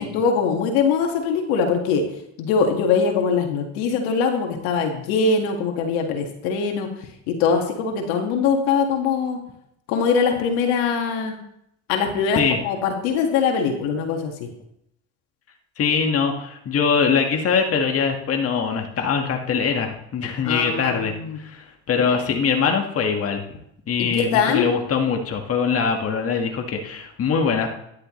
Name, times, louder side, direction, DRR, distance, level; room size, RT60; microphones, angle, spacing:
voice 1, 0.0-2.0 2.4-6.9 7.3-9.4 9.9-11.3 11.9-14.5 20.4-21.4 22.0-22.2 24.0-24.8, left 5 dB, 80° left, 3 dB, 2.0 m, -22 dB
voice 2, 15.8-23.5 23.9-27.7, left 6 dB, 40° left, 3 dB, 1.8 m, -22 dB
13.0 x 11.0 x 3.2 m, 0.77 s
supercardioid pair, 90°, 35 cm